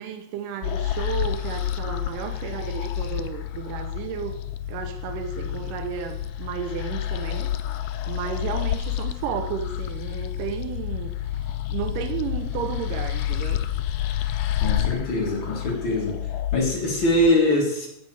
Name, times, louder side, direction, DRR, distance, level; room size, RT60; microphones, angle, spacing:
voice 1, 0.0-4.4 4.7-7.5 8.1-11.1 11.7-13.6, right 8 dB, 90° right, 6 dB, 2.5 m, -33 dB
sound 1, 0.6-17.3, left 11 dB, 80° left, 1.8 m, -29 dB
voice 2, 14.6-16.2 16.5-17.9, left 1 dB, 45° left, -1 dB, 2.4 m, -22 dB
15.0 x 5.4 x 4.8 m, 0.78 s
omnidirectional pair, 3.7 m